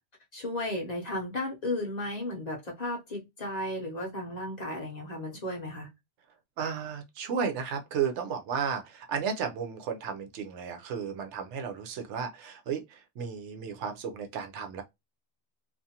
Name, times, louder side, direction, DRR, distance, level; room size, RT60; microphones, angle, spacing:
voice 1, 0.3-5.9, left 1 dB, 45° left, 0.7 m, -34 dB
voice 2, 6.6-14.8, right 7 dB, 85° right, 0.9 m, -33 dB
2.5 x 2.3 x 2.8 m
omnidirectional pair, 1.2 m